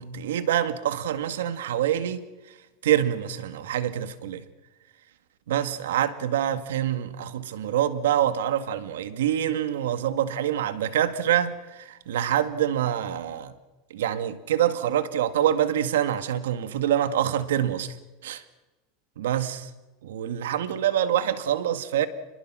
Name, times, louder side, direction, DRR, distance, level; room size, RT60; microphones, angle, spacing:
voice 1, 0.0-2.2 2.8-4.4 5.5-13.5 13.9-18.0 18.2-18.4 19.2-19.7 20.0-22.1, right 10 dB, 90° right, 1.9 m, -26 dB
27.5 x 21.5 x 6.2 m
supercardioid pair, 120°, 0 cm